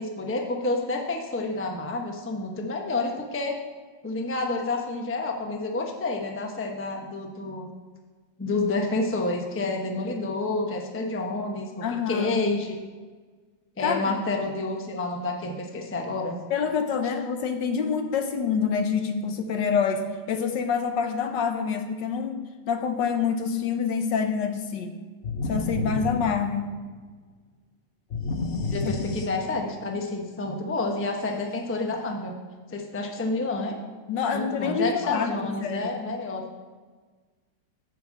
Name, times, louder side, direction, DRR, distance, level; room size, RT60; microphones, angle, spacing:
voice 1, 0.0-3.6 4.0-7.7 8.4-12.8 13.8-16.4 28.7-32.3 32.7-33.8 34.3-36.6, left 2 dB, 10° left, 2 dB, 0.7 m, -29 dB
voice 2, 11.8-12.4 13.8-14.2 16.5-25.0 25.5-26.7 28.8-28.9 34.1-35.9, left 6 dB, 75° left, 6 dB, 1.5 m, -27 dB
sound 1, 25.2-27.0 28.1-29.8, left 3 dB, 50° left, 1.0 m, -31 dB
10.5 x 5.4 x 7.4 m, 1.4 s
omnidirectional pair, 2.0 m